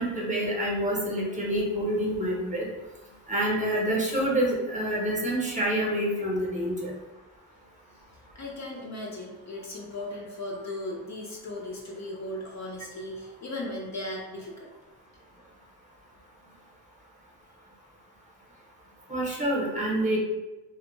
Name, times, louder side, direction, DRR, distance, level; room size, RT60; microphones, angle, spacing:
voice 1, 0.0-2.6 3.3-6.9 19.1-20.2, right 1 dB, 20° right, -4 dB, 0.8 m, -27 dB
voice 2, 8.3-14.7, left 1 dB, 40° left, -2 dB, 0.6 m, -37 dB
2.3 x 2.1 x 3.0 m, 1.1 s
cardioid pair, 70°, 41 cm